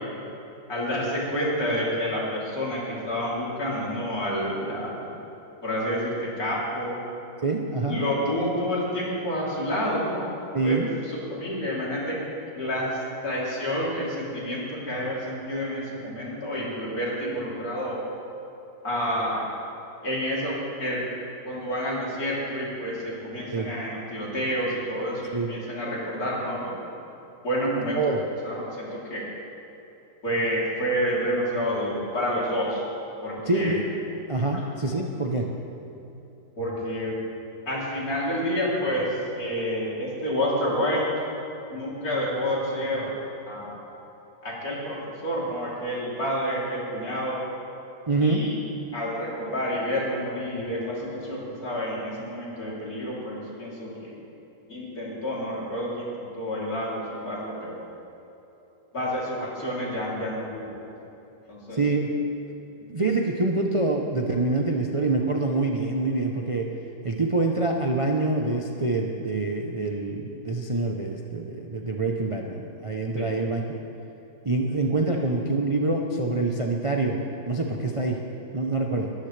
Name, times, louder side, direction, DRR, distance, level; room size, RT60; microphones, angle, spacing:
voice 1, 0.7-5.1 5.6-7.0 7.9-10.3 10.6-10.8 11.1-12.2 12.5-18.0 18.8-19.5 20.0-21.0 21.4-26.8 27.4-28.0 28.4-29.2 30.2-32.8 33.2-33.8 34.5-34.6 36.6-37.2 37.7-41.1 41.7-43.2 43.5-43.8 44.4-47.4 48.2-48.6 48.9-54.2 54.7-57.8 58.9-60.7 61.5-61.8 73.2-73.3, equal, 50° left, -6 dB, 3.9 m, -29 dB
voice 2, 7.4-8.0 10.5-10.9 23.5-23.7 25.3-25.5 27.9-28.2 33.5-33.8 34.3-35.5 48.1-48.5 61.7-62.1 62.9-66.7 67.0-73.6 74.4-77.2 77.5-78.2 78.5-79.1, right 2 dB, 45° right, 0 dB, 0.4 m, -25 dB
21.0 x 13.5 x 3.4 m, 3.0 s
omnidirectional pair, 2.0 m